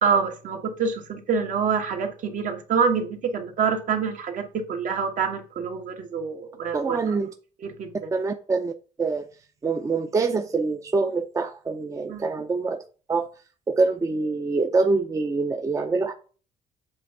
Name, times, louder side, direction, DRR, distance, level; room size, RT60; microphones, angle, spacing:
voice 1, 0.0-7.0 7.6-8.1 12.1-12.3, right 6 dB, 60° right, 4 dB, 1.5 m, -26 dB
voice 2, 6.7-7.3 8.1-8.7 9.0-9.3 9.6-12.8 13.1-13.3 13.7-16.1, right 3 dB, 20° right, 6 dB, 0.6 m, -25 dB
7.6 x 3.5 x 5.5 m, 0.37 s
cardioid pair, 130°, 15 cm